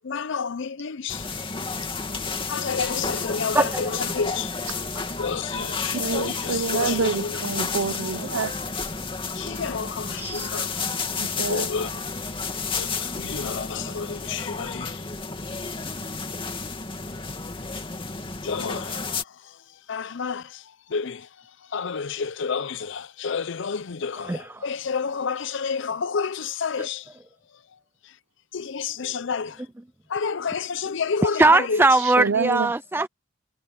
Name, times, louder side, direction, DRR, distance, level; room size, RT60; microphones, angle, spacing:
voice 1, 0.1-1.2 2.5-3.6 4.1-4.5 5.2-7.0 9.4-10.7 11.5-11.9 12.8-12.9 13.2-14.9 18.4-18.9 19.9-20.4 20.9-21.2 21.7-24.3 24.6-27.0 28.5-29.5 30.1-31.4 31.7-31.8, left 5 dB, 65° left, 0.6 m, -29 dB
sound 1, 1.1-19.2, left 4 dB, 25° left, 2.5 m, -31 dB
voice 2, 3.5-4.0 10.2-10.5 24.2-24.7 26.8-26.9 31.2-33.1, right 2 dB, 10° right, 0.4 m, -21 dB
voice 3, 5.9-8.5 11.2-12.0 32.2-32.7, right 4 dB, 75° right, 0.7 m, -27 dB
head